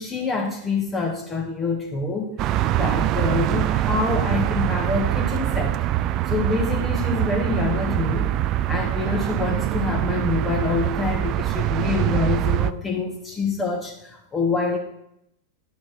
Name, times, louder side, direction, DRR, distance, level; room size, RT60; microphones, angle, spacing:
voice 1, 0.0-2.3 2.7-5.8 6.3-8.3 8.7-14.8, left 4 dB, 20° left, 1 dB, 1.4 m, -26 dB
sound 1, 2.4-12.7, right 13 dB, 35° right, 0.4 m, -23 dB
10.5 x 7.2 x 4.8 m, 0.79 s
figure-of-eight pair, 90°, 0 cm